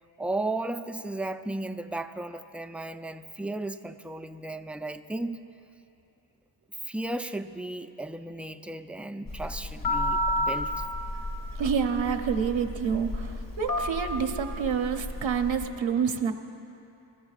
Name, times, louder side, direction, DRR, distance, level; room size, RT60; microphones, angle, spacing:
voice 1, 0.2-5.4 6.8-10.9, right 2 dB, 5° right, 9 dB, 0.3 m, -35 dB
Telephone, 9.3-15.7, left 1 dB, 45° left, 2.2 m, -31 dB
voice 2, 11.6-16.3, right 7 dB, 80° right, 6 dB, 0.9 m, -28 dB
26.5 x 14.0 x 2.5 m, 2.8 s
wide cardioid pair, 80°, 46 cm